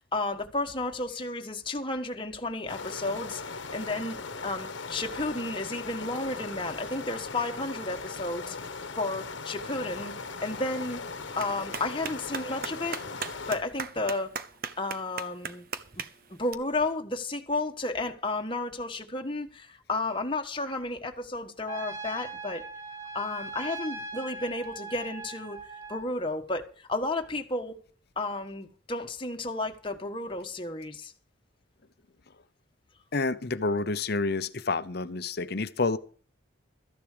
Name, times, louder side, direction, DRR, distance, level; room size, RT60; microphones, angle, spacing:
voice 1, 0.0-3.4 3.7-8.6 9.0-10.1 10.4-11.0 11.4-13.0 13.5-14.3 14.8-15.6 16.3-22.6 23.1-25.6 25.9-27.8 28.2-31.1, left 2 dB, 25° left, 1.4 m, -32 dB
sound 1, 2.7-13.6, left 4 dB, 70° left, 1.2 m, -39 dB
Clapping, 9.9-16.5, right 5 dB, 50° right, 0.9 m, -41 dB
Trumpet, 21.7-26.0, right 3 dB, 15° right, 5.1 m, -40 dB
voice 2, 33.1-36.0, left 3 dB, 55° left, 0.8 m, -29 dB
14.0 x 10.5 x 5.1 m
head